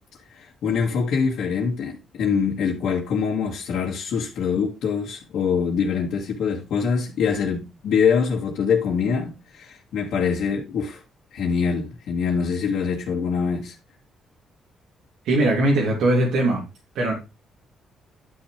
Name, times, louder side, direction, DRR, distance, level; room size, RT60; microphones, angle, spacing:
voice 1, 0.3-11.0 11.3-13.7, left 6 dB, 75° left, 2.0 m, -24 dB
voice 2, 15.2-16.6 16.9-17.1, right 1 dB, 85° right, 2.9 m, -20 dB
11.0 x 6.0 x 3.3 m
cardioid pair, 90°, 0 cm